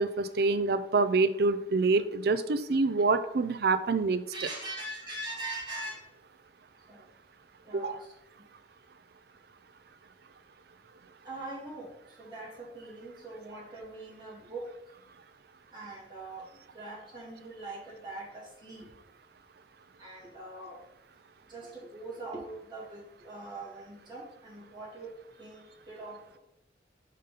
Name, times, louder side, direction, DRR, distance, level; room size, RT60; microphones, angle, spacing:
voice 1, 0.0-4.5 7.7-8.0, right 3 dB, 60° right, 12 dB, 0.4 m, -26 dB
voice 2, 4.3-6.1 6.9-7.1 7.6-8.1 8.4-8.5 11.2-14.9 15.7-18.9 20.0-20.8 21.5-25.1 25.4-26.4, right 2 dB, 25° right, -4 dB, 2.1 m, -42 dB
5.3 x 5.3 x 4.0 m, 0.77 s
head